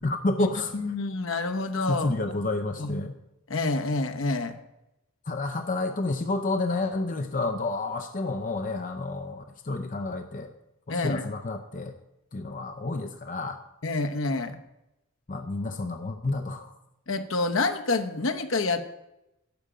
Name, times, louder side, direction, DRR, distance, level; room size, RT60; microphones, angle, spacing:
voice 1, 0.0-0.7 1.9-3.2 5.3-10.5 10.9-11.9 12.3-13.6 15.3-16.7, left 2 dB, 40° left, 6 dB, 0.6 m, -30 dB
voice 2, 0.7-2.1 2.8-3.0 3.5-4.6 10.9-11.3 13.8-14.6 17.1-19.0, left 3 dB, 70° left, 7 dB, 0.9 m, -28 dB
12.0 x 5.0 x 8.7 m, 0.91 s
head